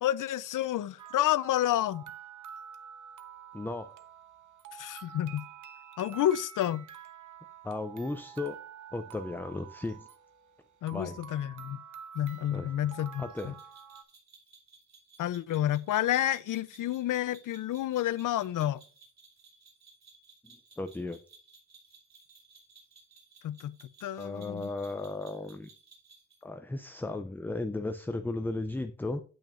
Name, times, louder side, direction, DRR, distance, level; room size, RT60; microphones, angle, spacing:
voice 1, 0.0-2.0 4.7-5.5 6.0-6.9 10.8-11.8 12.1-13.5 15.2-18.8 23.4-24.7, left 12 dB, 80° left, 0.5 m, -30 dB
sound 1, 1.0-14.0, right 8 dB, 75° right, 1.0 m, -48 dB
voice 2, 3.5-3.9 7.6-8.6 8.9-10.1 10.9-11.2 12.5-12.7 13.2-13.5 20.8-21.2 24.1-25.7 26.4-29.2, left 2 dB, 5° left, 0.4 m, -35 dB
sound 2, 13.4-26.4, right 4 dB, 60° right, 3.2 m, -58 dB
8.9 x 8.7 x 2.5 m
wide cardioid pair, 130°, 31 cm